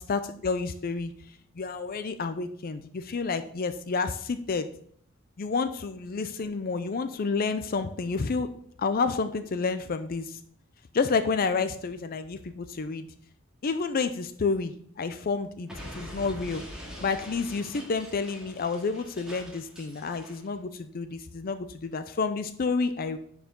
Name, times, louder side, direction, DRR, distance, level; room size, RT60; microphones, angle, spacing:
voice 1, 0.1-1.1 1.6-4.7 5.4-8.5 8.8-10.4 10.9-13.1 13.6-15.7 15.9-16.6 17.0-23.2, left 4 dB, 45° left, 10 dB, 0.5 m, -29 dB
Explosion, 15.7-20.5, equal, 5° right, 2.2 m, -43 dB
10.0 x 4.7 x 3.7 m, 0.64 s
head